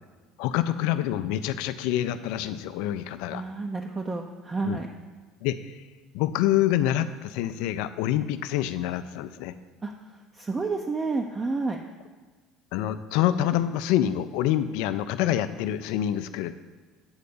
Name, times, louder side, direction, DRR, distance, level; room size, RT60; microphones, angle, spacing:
voice 1, 0.4-3.4 4.6-4.8 5.4-5.8 6.1-9.5 12.7-16.5, left 12 dB, 60° left, 12 dB, 0.4 m, -26 dB
voice 2, 3.3-4.9 9.8-11.8, right 3 dB, 25° right, 2 dB, 0.5 m, -30 dB
8.0 x 4.2 x 6.7 m, 1.4 s
figure-of-eight pair, 60°, 0 cm